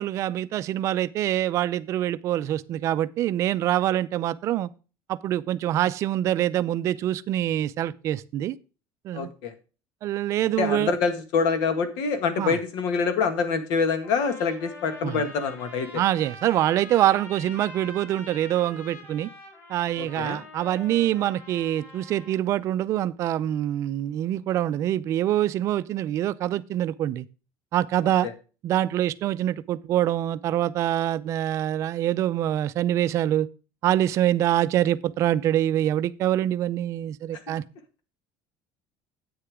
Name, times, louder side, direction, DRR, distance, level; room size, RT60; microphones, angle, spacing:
voice 1, 0.0-4.7 5.1-8.6 9.0-9.3 10.0-11.0 12.4-12.6 15.0-15.3 15.9-19.3 19.7-27.3 27.7-28.3 28.6-33.5 33.8-37.6, right 12 dB, 40° right, 0.5 m, -25 dB
voice 2, 9.1-9.5 10.6-16.0 20.0-20.4 28.2-28.3, left 5 dB, 65° left, 1.9 m, -26 dB
sound 1, 14.0-22.4, left 2 dB, 35° left, 5.5 m, -45 dB
9.8 x 8.8 x 3.6 m
cardioid pair, 175°, 8 cm